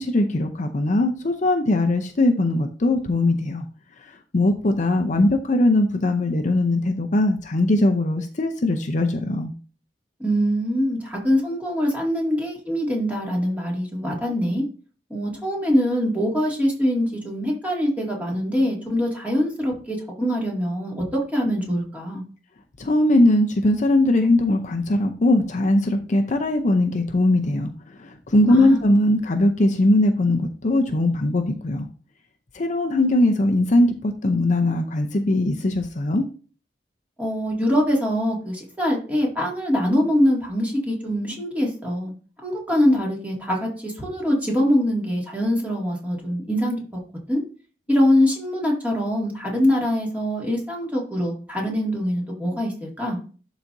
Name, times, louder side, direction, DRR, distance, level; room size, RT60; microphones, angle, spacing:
voice 1, 0.0-3.7 4.3-9.5 22.8-27.7 28.0-31.9 32.5-36.3, left 1 dB, 45° left, 5 dB, 0.6 m, -20 dB
voice 2, 10.2-14.6 15.1-22.2 28.5-28.8 37.2-42.1 42.4-47.0 47.3-47.4 47.9-53.2, equal, 10° right, -2 dB, 2.1 m, -23 dB
11.5 x 4.0 x 2.6 m, 0.39 s
head